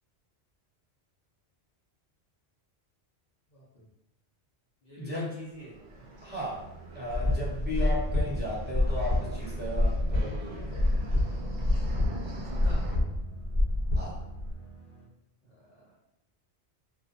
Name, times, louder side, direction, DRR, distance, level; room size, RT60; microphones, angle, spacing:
voice 1, 3.5-3.9 4.8-5.8 12.4-12.9 15.4-15.9, right 1 dB, 50° left, -7 dB, 0.6 m, -48 dB
voice 2, 5.0-5.3 6.2-6.7 6.9-10.9 14.0-14.2, left 1 dB, 15° right, -7 dB, 0.4 m, -35 dB
sound 1, 5.5-13.0, right 1 dB, 85° right, 0.9 m, -42 dB
sound 2, 6.5-15.0, right 3 dB, 85° left, 0.9 m, -47 dB
sound 3, 7.1-14.5, left 1 dB, 60° right, 1.2 m, -27 dB
2.5 x 2.2 x 2.4 m, 0.88 s
omnidirectional pair, 1.1 m